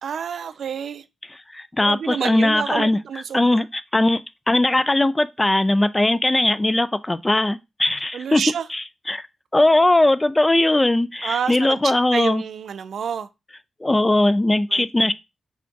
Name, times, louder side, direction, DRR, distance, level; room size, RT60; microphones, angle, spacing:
voice 1, 0.0-1.0 1.8-3.6 8.1-8.7 11.2-11.8 12.1-13.3 14.7-14.8, right 7 dB, 75° right, 0.3 m, -28 dB
voice 2, 1.3-3.0 3.3-4.2 4.5-8.4 8.7-9.2 9.5-12.4 13.8-15.1, left 1 dB, 20° left, 0.3 m, -19 dB
3.5 x 2.3 x 3.8 m
cardioid pair, 60°, 0 cm